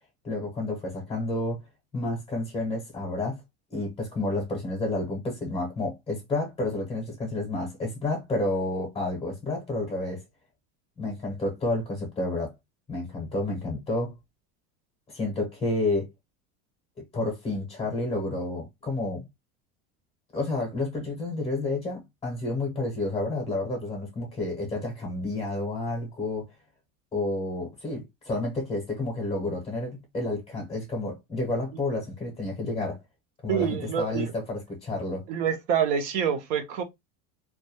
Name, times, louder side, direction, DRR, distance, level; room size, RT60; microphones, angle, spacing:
voice 1, 0.2-1.6 1.9-3.4 3.7-10.2 11.0-12.5 12.9-14.2 15.1-16.1 17.1-19.3 20.3-26.4 27.1-33.0 33.4-35.2, left 2 dB, 15° left, 0.6 m, -30 dB
voice 2, 33.5-34.3 35.3-36.8, right 8 dB, 80° right, 0.7 m, -26 dB
2.2 x 2.1 x 2.8 m
cardioid pair, 165°, 38 cm